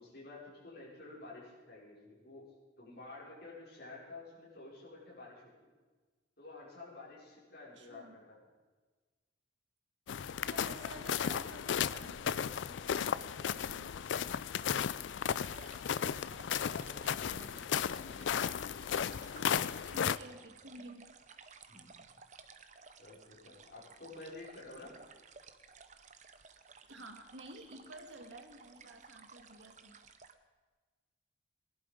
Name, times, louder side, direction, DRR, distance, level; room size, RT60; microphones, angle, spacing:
voice 1, 0.0-2.4 2.8-5.7 6.4-8.4 14.4-14.8 16.5-18.5 21.7-22.0 23.0-24.9, left 3 dB, 55° left, -6 dB, 5.2 m, -51 dB
voice 2, 7.8-8.2 10.5-14.0 17.3-17.5 19.8-21.1 26.9-30.0, right 2 dB, 70° right, 5 dB, 1.8 m, -52 dB
sound 1, 10.1-20.2, left 8 dB, 75° left, 0.4 m, -35 dB
sound 2, 15.3-30.3, right 5 dB, 40° right, 0.8 m, -57 dB
19.0 x 11.5 x 5.2 m, 1.4 s
head